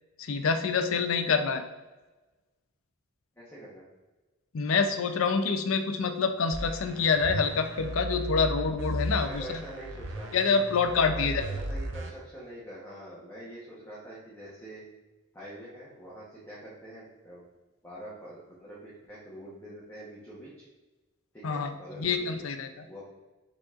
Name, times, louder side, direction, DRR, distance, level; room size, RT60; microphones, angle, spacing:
voice 1, 0.2-1.6 4.5-9.6 10.3-11.5 21.4-22.8, left 5 dB, 70° left, 7 dB, 0.5 m, -27 dB
voice 2, 3.4-3.8 9.2-10.5 11.0-14.8 15.3-17.4 17.8-20.7 21.3-22.5 22.8-23.0, right 1 dB, 10° left, -8 dB, 0.9 m, -45 dB
sound 1, 6.5-12.1, right 1 dB, 60° right, 0.6 m, -35 dB
5.2 x 4.1 x 2.4 m, 1.1 s
head